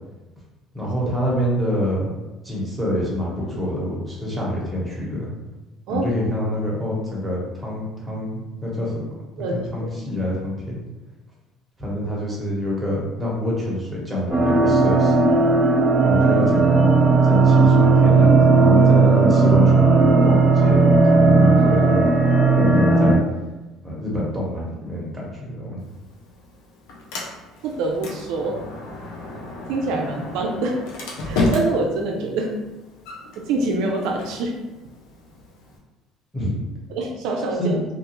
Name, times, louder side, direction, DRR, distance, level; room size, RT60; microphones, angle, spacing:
voice 1, 0.7-2.1 2.4-5.3 5.9-9.0 9.4-10.8 11.8-15.3 16.0-16.9 17.3-22.1 22.5-23.2 23.8-25.8 36.3-36.6 37.6-37.8, left 1 dB, 10° right, -5 dB, 1.0 m, -26 dB
voice 2, 9.4-9.9 27.6-28.6 29.7-30.8 31.2-32.5 33.4-34.6 36.9-37.8, right 2 dB, 75° right, 1 dB, 0.3 m, -25 dB
sound 1, 14.3-23.1, right 3 dB, 30° right, 0.9 m, -15 dB
Sliding door, 25.8-35.8, left 2 dB, 80° left, 0.6 m, -32 dB
2.4 x 2.3 x 2.9 m, 1.1 s
supercardioid pair, 90°, 0 cm